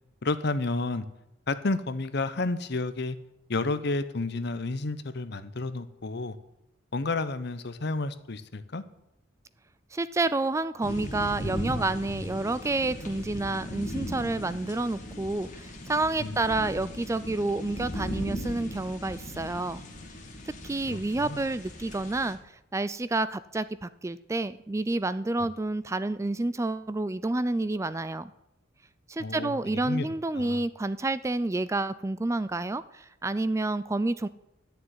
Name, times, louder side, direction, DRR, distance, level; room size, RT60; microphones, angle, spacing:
voice 1, 0.2-1.1 1.5-3.2 3.5-6.4 6.9-8.8 16.2-16.4 20.9-21.4 25.4-25.5 29.2-30.1 30.3-30.6, left 3 dB, 60° left, 12 dB, 0.8 m, -31 dB
voice 2, 9.9-19.8 20.6-22.4 22.7-28.3 29.1-34.3, right 2 dB, 15° right, 15 dB, 0.3 m, -29 dB
sound 1, 10.8-22.3, left 1 dB, 40° left, 2.2 m, -38 dB
11.5 x 7.0 x 9.5 m, 0.87 s
head